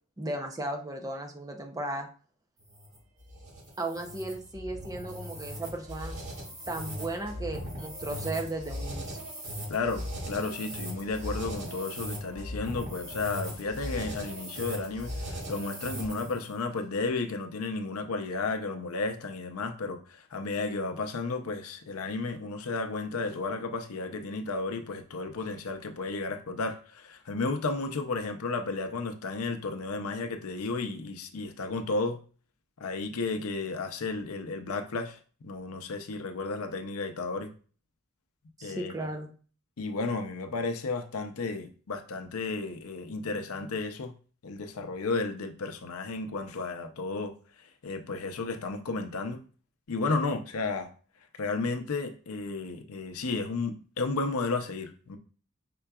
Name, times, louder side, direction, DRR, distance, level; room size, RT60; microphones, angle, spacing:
voice 1, 0.2-2.1 3.8-6.2 6.7-9.2 38.6-39.3, right 2 dB, 15° right, 3 dB, 0.6 m, -35 dB
sound 1, 2.6-16.4, equal, 80° right, 2.0 m, -38 dB
voice 2, 9.7-32.2 32.8-37.5 38.6-38.9 39.8-44.1 44.4-49.4 49.9-50.9 51.4-55.2, left 3 dB, 80° left, 7 dB, 0.6 m, -33 dB
5.6 x 3.8 x 2.3 m, 0.41 s
head